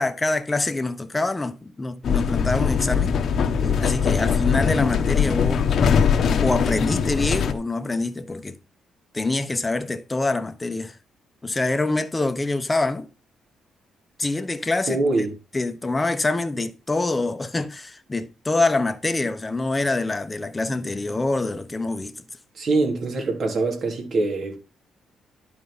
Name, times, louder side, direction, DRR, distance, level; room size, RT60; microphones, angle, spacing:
voice 1, 0.0-3.2 3.8-5.7 6.4-8.6 9.1-11.0 11.4-13.1 14.2-15.0 15.5-22.2, left 2 dB, 20° left, 1.2 m, -25 dB
sound 1, 2.0-7.5, left 7 dB, 60° left, 1.3 m, -21 dB
voice 2, 14.9-15.3 22.6-24.6, right 3 dB, 50° right, 3.7 m, -23 dB
11.5 x 4.7 x 5.8 m
cardioid pair, 90°, 0 cm